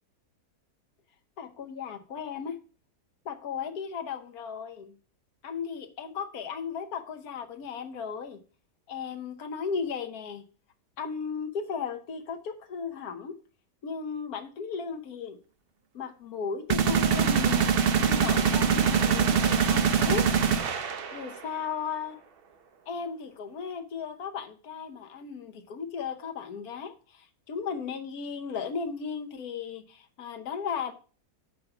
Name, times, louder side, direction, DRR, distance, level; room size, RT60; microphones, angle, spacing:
voice 1, 1.4-2.6 3.2-4.9 5.4-8.4 8.9-10.4 11.0-13.3 13.8-15.4 15.9-17.7 18.0-20.3 21.1-22.2 22.9-30.9, left 6 dB, 65° left, 1.3 m, -35 dB
sound 1, 16.7-21.4, right 7 dB, 75° right, 0.5 m, -24 dB
7.0 x 5.1 x 5.8 m
omnidirectional pair, 1.8 m